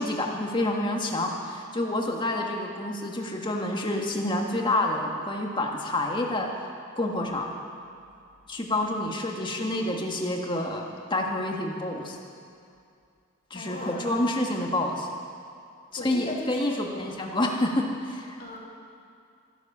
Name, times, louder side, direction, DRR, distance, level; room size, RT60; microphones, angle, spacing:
voice 1, 0.0-6.5 7.0-7.5 8.5-12.2 13.5-15.1 16.0-18.4, left 1 dB, 20° left, 1 dB, 1.5 m, -28 dB
voice 2, 13.5-14.1 16.0-17.2 18.4-18.6, left 2 dB, 40° left, -3 dB, 2.7 m, -37 dB
14.0 x 12.0 x 7.3 m, 2.4 s
head